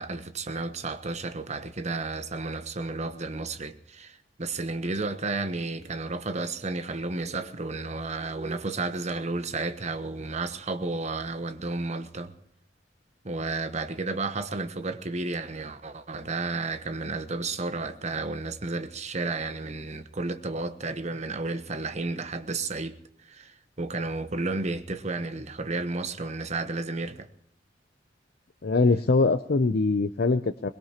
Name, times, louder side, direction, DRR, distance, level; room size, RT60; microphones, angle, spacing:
voice 1, 0.0-12.3 13.2-23.0 23.3-27.3, right 3 dB, 40° right, 1.1 m, -32 dB
voice 2, 28.6-30.7, left 3 dB, 55° left, 0.6 m, -23 dB
22.5 x 20.5 x 2.9 m
head